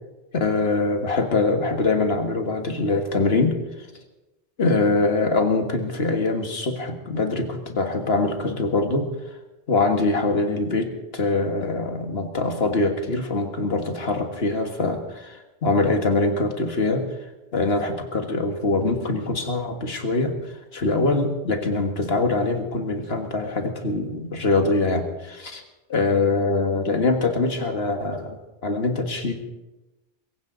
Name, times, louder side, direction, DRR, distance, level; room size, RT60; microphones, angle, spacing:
voice 1, 0.3-3.6 4.6-9.1 9.7-17.1 17.5-20.4 20.7-25.6 25.9-29.3, left 3 dB, 70° left, 5 dB, 1.9 m, -23 dB
22.5 x 16.0 x 4.0 m, 1.1 s
omnidirectional pair, 1.1 m